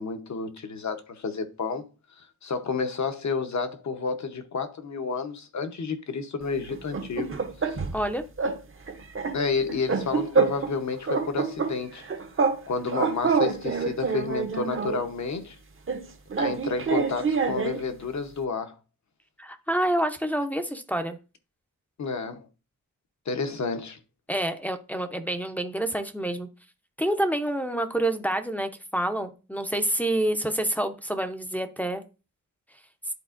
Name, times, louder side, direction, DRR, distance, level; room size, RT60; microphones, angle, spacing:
voice 1, 0.0-1.9 2.2-7.3 7.6-7.8 9.3-12.1 12.7-15.6 16.4-18.8 22.0-22.5 23.3-24.0, left 4 dB, 55° left, 0.9 m, -30 dB
sound 1, 6.7-8.0 8.4-8.6 8.9-10.8 11.1-12.6 12.9-15.0 15.9-17.9, right 5 dB, 40° right, 0.7 m, -27 dB
voice 2, 7.9-8.2 19.4-21.2 24.3-26.5 27.0-32.0, right 1 dB, 5° left, 0.5 m, -27 dB
11.0 x 4.3 x 2.5 m
wide cardioid pair, 140°, 34 cm